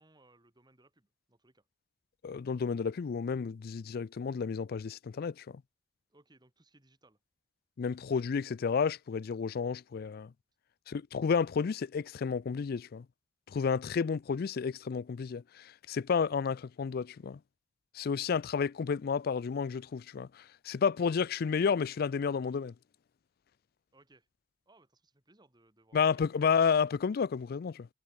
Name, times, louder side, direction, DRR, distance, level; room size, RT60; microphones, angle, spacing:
voice 1, 0.0-1.7 6.1-7.2 23.9-24.3 24.7-26.2, right 2 dB, 25° right, 2.9 m, -64 dB
voice 2, 2.2-5.6 7.8-10.3 10.9-13.1 13.5-17.4 17.9-22.7 25.9-27.9, left 6 dB, 55° left, 0.4 m, -31 dB
head